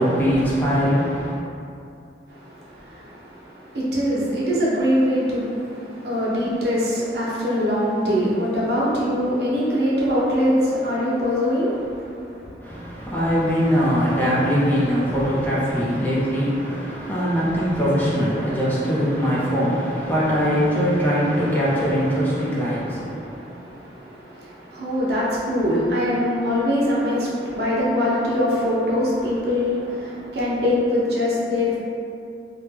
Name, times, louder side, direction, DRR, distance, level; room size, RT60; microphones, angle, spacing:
voice 1, 0.0-1.4 12.6-23.6, equal, 10° left, -8 dB, 0.6 m, -21 dB
voice 2, 2.3-12.5 23.2-31.8, left 1 dB, 65° right, -7 dB, 0.7 m, -23 dB
3.4 x 2.2 x 3.3 m, 2.6 s
head